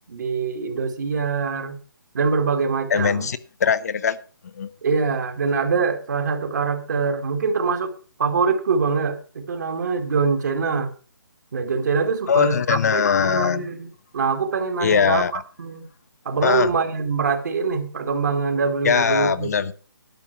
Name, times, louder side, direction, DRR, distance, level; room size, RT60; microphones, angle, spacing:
voice 1, 0.1-1.8 2.1-3.3 4.8-7.9 8.2-10.9 11.5-13.9 14.1-15.9 16.2-19.5, right 5 dB, 55° right, 2.4 m, -24 dB
voice 2, 2.9-4.2 4.6-4.7 12.3-13.7 14.8-15.3 16.4-16.7 18.8-19.7, left 7 dB, 45° left, 0.7 m, -21 dB
12.0 x 7.2 x 6.9 m
hypercardioid pair, 165°, 12 cm